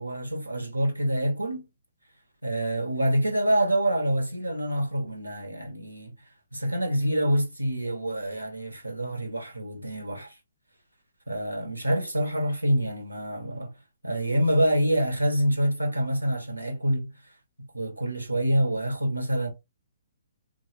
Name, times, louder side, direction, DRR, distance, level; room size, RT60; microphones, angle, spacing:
voice 1, 0.0-1.6 2.4-6.1 6.5-10.3 11.3-13.7 14.0-17.1 17.7-19.5, right 1 dB, 85° right, 0.9 m, -26 dB
3.9 x 2.0 x 3.1 m
figure-of-eight pair, 125°, 0 cm